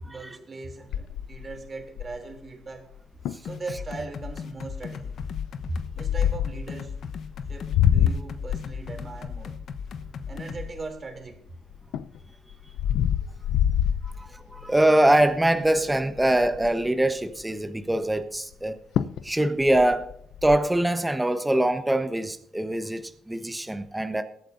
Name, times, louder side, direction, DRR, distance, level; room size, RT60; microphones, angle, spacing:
voice 1, 0.0-2.9 3.4-5.1 5.7-7.0 7.5-9.6 10.3-11.4, right 3 dB, 35° right, 5 dB, 2.9 m, -39 dB
sound 1, 0.9-2.4 2.9-3.0 3.3-3.5 4.0-4.3 5.2-6.6 7.3-11.2 11.7-14.7 15.2-15.5 15.7-15.8 16.1-16.9 18.5-18.6 19.0-19.3 19.6-20.6, left 10 dB, 85° left, 0.5 m, -26 dB
sound 2, 3.4-10.7, left 6 dB, 65° left, 0.9 m, -37 dB
voice 2, 14.0-18.8 19.2-20.1 20.4-24.2, right 1 dB, 10° right, 8 dB, 1.0 m, -23 dB
21.5 x 9.0 x 2.6 m, 0.72 s
cardioid pair, 90°, 0 cm